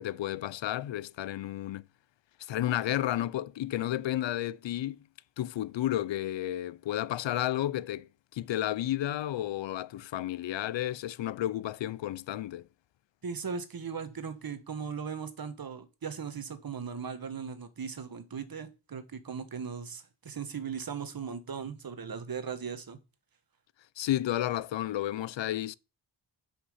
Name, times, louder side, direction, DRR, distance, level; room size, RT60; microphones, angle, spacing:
voice 1, 0.0-1.8 2.4-5.0 5.4-12.7 24.0-25.7, left 13 dB, 70° left, 0.5 m, -32 dB
voice 2, 13.2-23.0, right 6 dB, 50° right, 1.4 m, -38 dB
8.1 x 5.8 x 5.6 m
cardioid pair, 90°, 46 cm